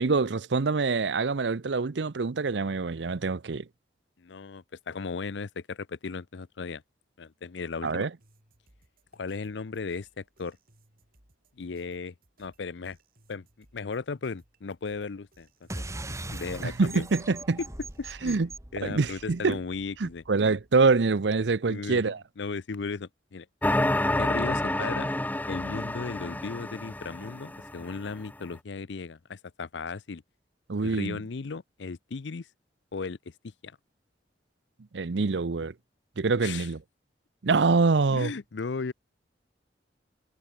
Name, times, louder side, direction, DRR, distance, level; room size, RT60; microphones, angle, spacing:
voice 1, 0.0-3.7 7.8-8.1 16.6-17.6 18.2-18.5 18.8-19.6 20.0-22.2 30.7-31.2 34.9-35.7 36.2-36.8 37.4-38.3, right 4 dB, 75° right, 0.7 m, -25 dB
voice 2, 4.2-6.8 7.2-8.1 9.1-10.6 11.6-13.0 13.3-15.8 16.3-17.0 17.6-17.7 18.0-18.4 18.7-20.2 21.7-23.5 24.2-25.1 25.5-30.2 30.8-32.5 32.9-33.2 33.6-33.7 36.4-36.7 38.1-38.9, left 4 dB, 75° left, 0.6 m, -36 dB
sound 1, 8.2-18.1, right 1 dB, 55° right, 6.3 m, -64 dB
sound 2, 15.7-20.6, right 2 dB, 15° right, 1.6 m, -41 dB
sound 3, 23.6-28.1, left 1 dB, 10° left, 0.7 m, -29 dB
head